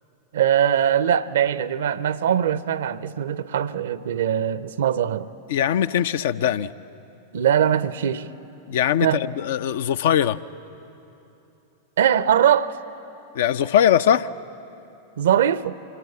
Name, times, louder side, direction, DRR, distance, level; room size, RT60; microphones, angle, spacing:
voice 1, 0.3-5.3 7.3-8.3 9.0-9.2 12.0-12.8 15.2-15.8, right 9 dB, 65° right, 16 dB, 0.6 m, -21 dB
voice 2, 5.5-6.7 8.7-10.4 13.3-14.3, left 10 dB, 60° left, 13 dB, 0.5 m, -21 dB
25.0 x 18.5 x 8.2 m, 3.0 s
figure-of-eight pair, 90°, 0 cm